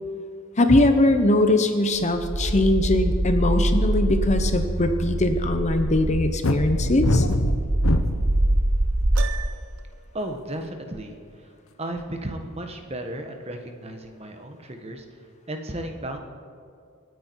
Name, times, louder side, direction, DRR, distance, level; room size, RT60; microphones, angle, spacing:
voice 1, 0.6-7.3, left 2 dB, 35° left, 7 dB, 0.8 m, -21 dB
sound 1, 1.9-9.2, right 1 dB, 65° right, 1.0 m, -24 dB
sound 2, 6.4-8.4 9.0-9.5, left 2 dB, 70° left, 0.9 m, -23 dB
Piano, 9.1-10.0, right 7 dB, 85° right, 0.8 m, -36 dB
voice 2, 10.1-11.5 11.8-15.2 15.5-16.2, right 1 dB, 30° right, 5 dB, 1.3 m, -34 dB
26.0 x 9.3 x 4.7 m, 2.3 s
head